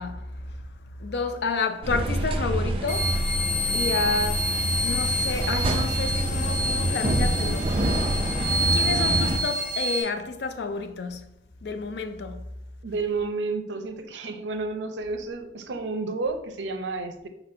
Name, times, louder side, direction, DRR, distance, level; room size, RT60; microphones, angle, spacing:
voice 1, 0.0-3.2 3.7-7.9 8.6-11.3 11.6-12.5, left 4 dB, 70° left, 0.4 m, -30 dB
sound 1, 1.8-9.4, right 1 dB, 30° right, 0.4 m, -26 dB
sound 2, 2.9-10.0, equal, 40° left, 1.2 m, -28 dB
voice 2, 12.8-17.3, right 3 dB, 90° right, 0.5 m, -31 dB
4.3 x 4.1 x 2.6 m
head